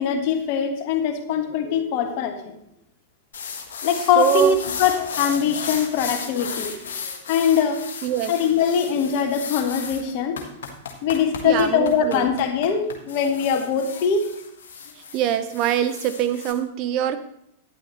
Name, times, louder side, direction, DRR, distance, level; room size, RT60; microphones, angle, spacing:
voice 1, 0.0-2.5 3.8-6.7 7.3-7.8 8.3-10.4 11.0-14.3, left 7 dB, 45° left, 6 dB, 1.5 m, -22 dB
sound 1, 3.3-16.5, left 6 dB, 60° left, 1.6 m, -35 dB
voice 2, 4.0-4.6 8.0-8.3 11.4-12.3 15.1-17.2, right 11 dB, 40° right, 10 dB, 0.8 m, -23 dB
11.5 x 10.5 x 3.1 m, 0.75 s
figure-of-eight pair, 95°, 0 cm